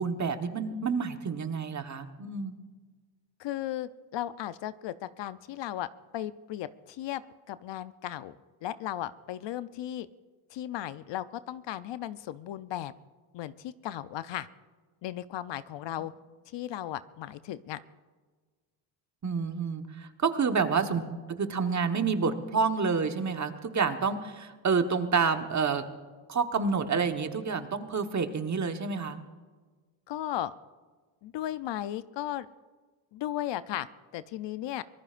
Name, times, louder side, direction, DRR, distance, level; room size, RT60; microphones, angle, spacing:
voice 1, 0.0-2.6 19.2-21.0 21.3-25.8 26.3-29.2, right 5 dB, 35° right, 7 dB, 1.3 m, -28 dB
voice 2, 3.4-5.9 6.1-7.2 7.5-10.1 10.5-12.9 13.3-14.5 15.0-16.1 16.5-17.8 20.8-21.2 30.1-30.5 31.2-32.5 33.1-33.9 34.1-34.8, left 12 dB, 60° left, 14 dB, 0.6 m, -36 dB
25.0 x 18.5 x 2.5 m, 1.4 s
supercardioid pair, 80°, 50 cm